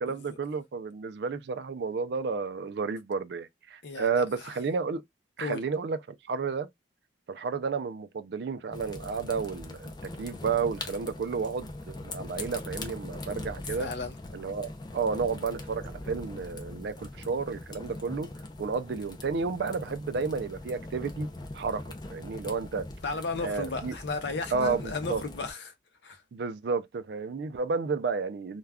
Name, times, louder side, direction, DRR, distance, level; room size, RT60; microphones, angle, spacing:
voice 1, 0.0-5.0 5.4-6.7 7.3-13.9 14.3-18.3 18.6-21.3 21.5-22.9 23.4-24.0 24.5-25.2 26.3-28.6, right 5 dB, 60° right, 0.4 m, -31 dB
voice 2, 3.8-4.5 5.4-5.6 13.8-14.1 23.0-25.7 26.0-26.2, left 3 dB, 65° left, 0.6 m, -34 dB
sound 1, 8.7-25.5, left 2 dB, 20° left, 0.4 m, -41 dB
2.3 x 2.2 x 3.4 m
head